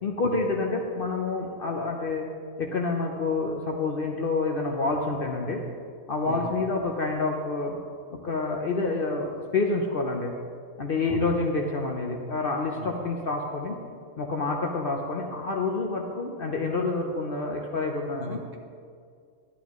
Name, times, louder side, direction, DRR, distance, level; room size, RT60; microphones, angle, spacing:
voice 1, 0.0-2.3 2.6-5.6 6.1-7.8 8.2-10.3 10.8-13.8 14.2-18.4, left 3 dB, 50° left, 1 dB, 0.7 m, -28 dB
voice 2, 18.1-18.6, right 2 dB, 50° right, 2 dB, 0.9 m, -38 dB
11.5 x 9.6 x 3.0 m, 2.2 s
omnidirectional pair, 1.5 m